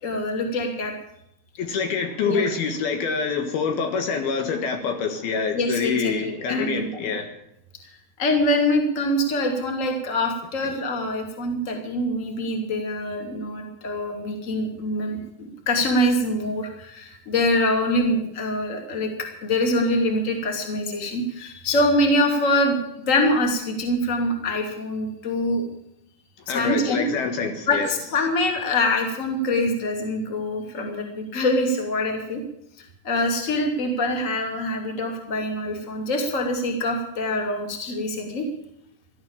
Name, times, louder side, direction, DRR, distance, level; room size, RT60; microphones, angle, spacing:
voice 1, 0.0-0.9 2.2-2.5 5.5-6.9 7.8-7.9 8.2-19.1 19.4-25.6 26.5-27.0 27.7-32.4 32.8-38.5, left 1 dB, 20° left, 3 dB, 2.5 m, -24 dB
voice 2, 1.6-7.3 26.5-27.9, left 5 dB, 70° left, 5 dB, 3.4 m, -26 dB
16.0 x 12.5 x 7.2 m, 0.79 s
omnidirectional pair, 4.7 m